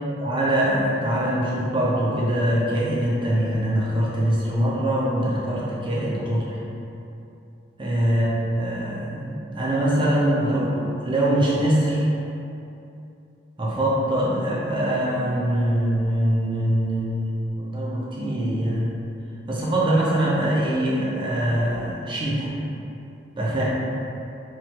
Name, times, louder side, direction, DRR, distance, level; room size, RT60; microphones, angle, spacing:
voice 1, 0.2-6.6 7.8-12.1 13.6-18.9 19.5-22.5 23.4-23.6, right 1 dB, 25° right, -6 dB, 0.5 m, -23 dB
3.1 x 2.5 x 2.9 m, 2.8 s
head